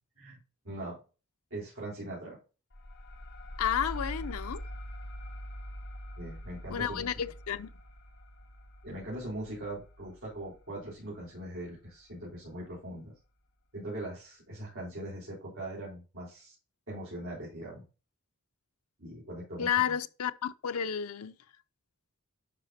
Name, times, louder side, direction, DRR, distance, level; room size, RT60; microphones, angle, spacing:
voice 1, 0.6-1.0 1.5-2.4 6.2-7.1 8.8-13.1 13.7-16.5 16.9-17.8 19.0-20.0, right 1 dB, 65° right, 4.3 m, -41 dB
sound 1, 2.7-11.9, equal, 55° left, 1.3 m, -44 dB
voice 2, 3.6-4.6 6.7-7.7 19.6-21.3, left 8 dB, 85° left, 0.5 m, -31 dB
10.5 x 5.8 x 2.7 m
head